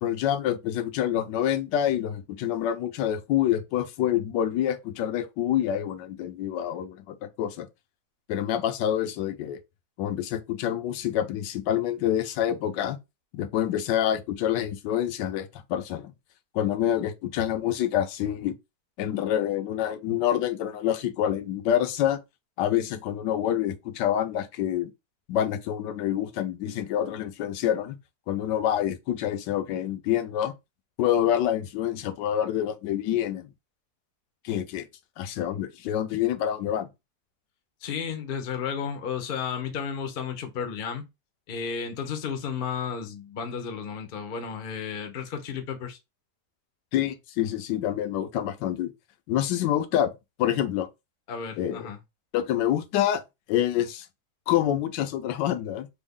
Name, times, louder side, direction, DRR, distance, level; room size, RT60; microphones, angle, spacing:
voice 1, 0.0-7.7 8.3-9.6 10.0-13.0 13.3-16.1 16.5-18.6 19.0-22.2 22.6-24.9 25.3-28.0 28.3-30.5 31.0-33.5 34.4-34.9 35.2-36.9 46.9-48.9 49.3-50.1 50.4-50.9 51.6-51.9 52.3-53.2 53.5-54.1 54.5-55.9, left 11 dB, 90° left, 1.2 m, -27 dB
voice 2, 37.8-41.0 41.5-46.0 51.3-52.0, left 7 dB, 60° left, 0.5 m, -33 dB
3.4 x 2.1 x 3.5 m
omnidirectional pair, 1.8 m